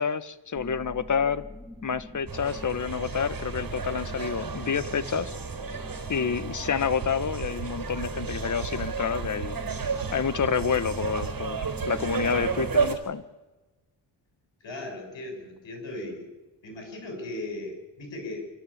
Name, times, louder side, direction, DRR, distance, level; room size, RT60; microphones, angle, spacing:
voice 1, 0.0-1.4 1.8-5.3 6.1-9.6 10.1-13.2, left 6 dB, 40° left, 13 dB, 1.2 m, -28 dB
sound 1, 0.6-12.7, left 3 dB, ahead, 1.5 m, -43 dB
sound 2, 2.3-13.0, right 5 dB, 50° right, 4.0 m, -33 dB
sound 3, 7.0-7.1 7.4-7.7 8.0-8.3 8.6-8.9 9.2-9.5 9.8-10.1 10.4-10.7 11.0-11.3 11.6-11.9 12.2-12.5 12.8-13.0, right 15 dB, 90° right, 1.0 m, -37 dB
voice 2, 14.6-16.3 16.6-18.5, left 2 dB, 75° left, 3 dB, 7.2 m, -37 dB
27.0 x 13.0 x 8.6 m, 1.1 s
cardioid pair, 75°, 45 cm